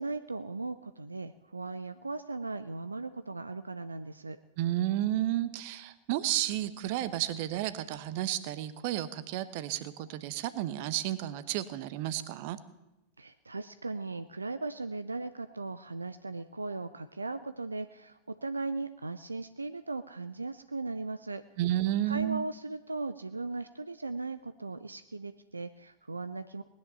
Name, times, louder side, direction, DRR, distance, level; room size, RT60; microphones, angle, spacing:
voice 1, 0.0-4.4 13.2-21.4 22.1-26.6, right 3 dB, 80° right, 12 dB, 0.5 m, -38 dB
voice 2, 4.6-12.6 21.6-22.4, right 13 dB, 50° right, 14 dB, 1.0 m, -32 dB
19.0 x 10.5 x 7.0 m, 0.93 s
figure-of-eight pair, 90°, 0 cm